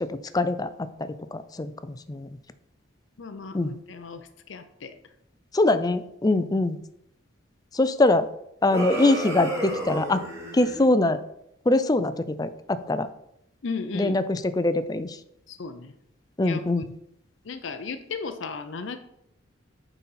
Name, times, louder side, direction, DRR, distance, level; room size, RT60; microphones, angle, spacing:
voice 1, 0.0-0.7 1.3-2.3 3.5-3.7 5.5-6.8 7.7-8.3 8.6-10.2 10.5-11.2 11.7-13.1 13.9-15.2 16.4-16.8, left 2 dB, 20° left, 12 dB, 0.4 m, -23 dB
voice 2, 3.2-4.9 13.6-14.2 15.5-15.9 16.4-16.9 17.4-19.0, left 4 dB, 65° left, 8 dB, 0.6 m, -35 dB
sound 1, 8.7-10.8, right 1 dB, 15° right, 2.3 m, -31 dB
8.4 x 4.1 x 5.7 m, 0.78 s
head